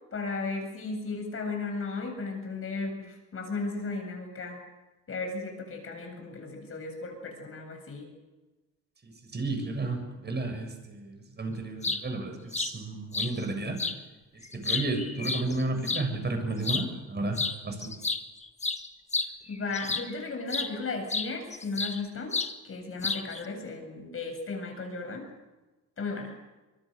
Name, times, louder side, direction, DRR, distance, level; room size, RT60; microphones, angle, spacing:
voice 1, 0.1-4.6 5.1-8.1 19.5-22.4 22.6-25.3 26.0-26.3, left 3 dB, 45° left, 4 dB, 7.8 m, -35 dB
voice 2, 9.0-13.8 14.5-17.9, right 2 dB, 35° right, 5 dB, 7.2 m, -32 dB
sound 1, 11.6-12.0 12.5-12.7 13.1-13.3 13.8-14.0 14.4-16.0 16.6-16.9 17.3-17.6 17.8-20.1 20.5-20.7 21.1-22.0 22.3-22.5 23.0-23.4, left 4 dB, 25° left, 1.7 m, -31 dB
25.0 x 22.5 x 6.6 m, 1.1 s
cardioid pair, 90°, 30 cm